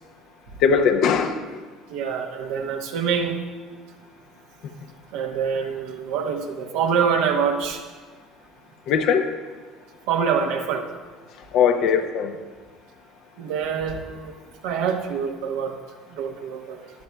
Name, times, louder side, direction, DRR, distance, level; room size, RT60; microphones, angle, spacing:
voice 1, 0.6-1.6 8.9-9.3 11.5-12.4, left 6 dB, 60° left, 6 dB, 0.8 m, -20 dB
voice 2, 1.9-3.4 5.1-7.8 10.1-10.8 13.4-14.3 14.6-15.8 16.2-16.8, right 6 dB, 70° right, 3 dB, 1.1 m, -25 dB
15.5 x 10.5 x 2.3 m, 1.4 s
hypercardioid pair, 65°, 0 cm